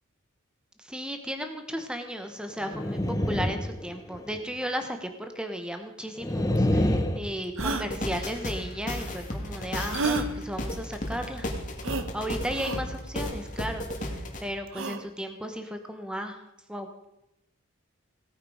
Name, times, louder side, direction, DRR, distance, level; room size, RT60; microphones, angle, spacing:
voice 1, 0.8-11.5 12.1-16.4 16.7-17.1, equal, 5° right, 6 dB, 1.0 m, -35 dB
sound 1, 2.6-4.4 6.2-7.2, left 1 dB, 15° left, 0.8 m, -26 dB
sound 2, 6.6-6.7 7.6-7.9 9.9-10.3 11.8-12.1 12.5-12.8 14.7-15.0, right 3 dB, 70° right, 1.1 m, -29 dB
sound 3, 7.6-14.4, left 1 dB, 35° left, 2.1 m, -34 dB
17.5 x 9.4 x 5.0 m, 0.88 s
head